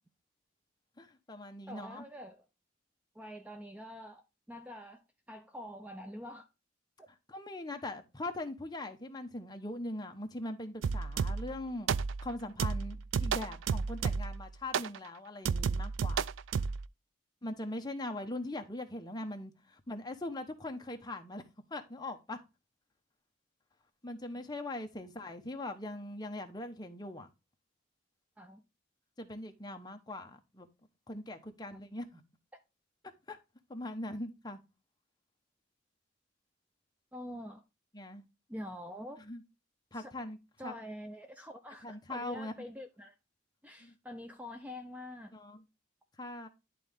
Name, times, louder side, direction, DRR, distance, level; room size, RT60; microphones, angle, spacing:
voice 1, 1.0-2.0 7.3-11.9 12.2-16.2 17.4-21.4 21.7-22.4 24.0-27.3 29.2-30.7 31.1-32.2 33.3-33.4 33.7-34.6 37.9-38.2 39.2-39.4 39.9-40.7 41.8-42.5 43.8-43.9 45.3-45.6 46.2-46.5, left 1 dB, 20° left, 0.9 m, -41 dB
voice 2, 1.7-2.4 3.1-6.5 28.4-28.6 31.7-31.8 37.1-37.6 38.5-39.2 39.9-40.1 40.6-43.1 43.6-45.3, left 1 dB, 5° right, 0.5 m, -46 dB
sound 1, 10.8-11.6 11.9-12.3 12.6-14.4 14.7-15.0 15.5-16.8, right 5 dB, 70° right, 0.4 m, -32 dB
11.0 x 3.8 x 3.5 m
head